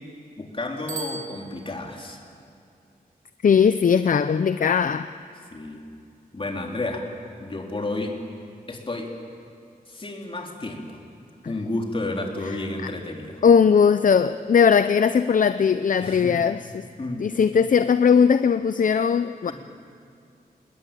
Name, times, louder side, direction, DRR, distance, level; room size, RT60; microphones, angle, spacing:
voice 1, 0.4-2.2 5.5-5.8 6.3-7.1 7.4-8.2 8.7-9.1 9.9-11.0 11.4-13.4 16.0-16.4 17.0-17.3, left 2 dB, 35° left, 1 dB, 3.6 m, -31 dB
Bicycle bell, 0.8-2.2, right 5 dB, 45° right, 2.9 m, -38 dB
voice 2, 3.4-5.1 13.4-16.9 17.2-19.5, left 6 dB, 60° left, 11 dB, 0.6 m, -19 dB
28.0 x 20.0 x 9.2 m, 2.4 s
wide cardioid pair, 110°, 16 cm